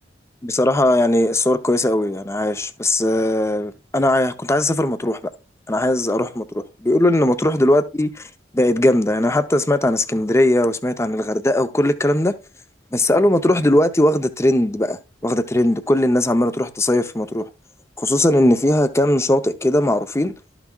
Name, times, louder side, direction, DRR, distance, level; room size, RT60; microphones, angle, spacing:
voice 1, 0.4-5.2 5.7-8.3 8.5-12.3 12.9-17.5 18.0-20.3, left 1 dB, 15° left, 0.6 m, -19 dB
12.5 x 6.0 x 2.3 m
head